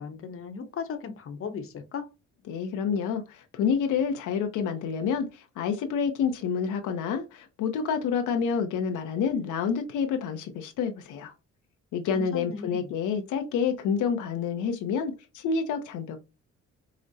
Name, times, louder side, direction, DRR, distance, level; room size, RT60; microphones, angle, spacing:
voice 1, 0.0-2.1 12.1-12.9, left 5 dB, 45° left, 0.8 m, -37 dB
voice 2, 2.5-11.3 11.9-16.2, left 6 dB, 85° left, 0.7 m, -28 dB
4.9 x 2.1 x 2.6 m
cardioid pair, 90°, 30 cm